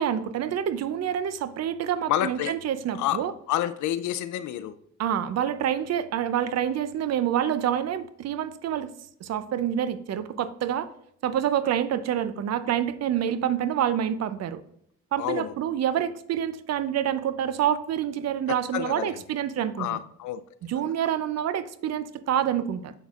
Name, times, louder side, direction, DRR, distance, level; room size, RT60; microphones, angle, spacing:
voice 1, 0.0-3.3 5.0-8.9 9.2-10.9 11.2-14.6 15.1-20.0 20.6-22.9, right 10 dB, 60° right, 13 dB, 0.5 m, -27 dB
voice 2, 2.1-2.5 2.9-4.8 15.2-15.5 18.5-19.2 19.8-20.4 20.8-20.9, left 12 dB, 75° left, 13 dB, 0.5 m, -29 dB
6.8 x 6.1 x 2.4 m, 0.72 s
cardioid pair, 90°, 30 cm